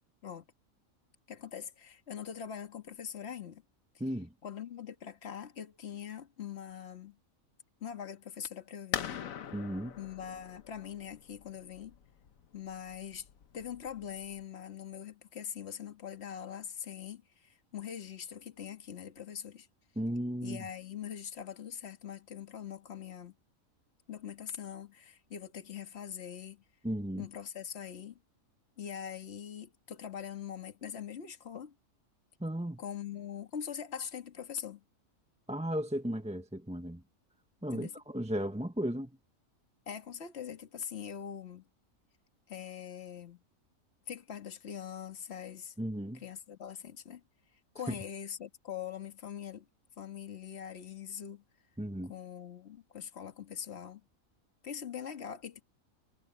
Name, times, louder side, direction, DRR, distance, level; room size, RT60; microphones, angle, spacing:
voice 1, 1.3-3.6 4.4-7.2 7.8-9.3 10.0-11.9 12.5-13.3 13.5-19.7 20.4-23.3 24.1-26.6 27.2-28.2 28.8-31.7 32.8-34.8 37.7-37.9 39.9-41.6 42.5-43.4 44.1-45.7 46.1-47.2 47.7-49.7 50.0-51.4 52.1-54.0 54.6-55.6, left 8 dB, 50° left, 1.9 m, -42 dB
sound 1, 8.9-14.4, left 9 dB, 75° left, 1.3 m, -42 dB
voice 2, 9.5-10.0 20.0-20.6 26.8-27.3 32.4-32.8 35.5-37.0 37.6-39.1 45.8-46.2 47.9-48.0 51.8-52.1, equal, 5° right, 0.8 m, -35 dB
omnidirectional pair, 1.4 m